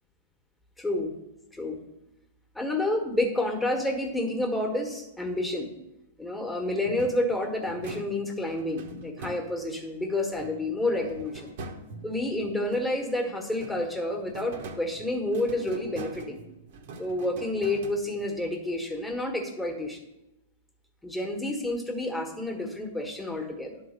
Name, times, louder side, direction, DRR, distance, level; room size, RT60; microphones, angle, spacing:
voice 1, 0.8-1.1 1.5-1.8 2.5-5.7 6.2-11.5 12.0-16.4 17.0-20.0 21.0-23.8, left 1 dB, 5° left, 2 dB, 1.4 m, -29 dB
sound 1, 6.8-9.9 10.3-13.1 13.5-18.4, right 2 dB, 60° right, 1.1 m, -44 dB
10.5 x 3.9 x 6.6 m, 0.93 s
hypercardioid pair, 125°, 0 cm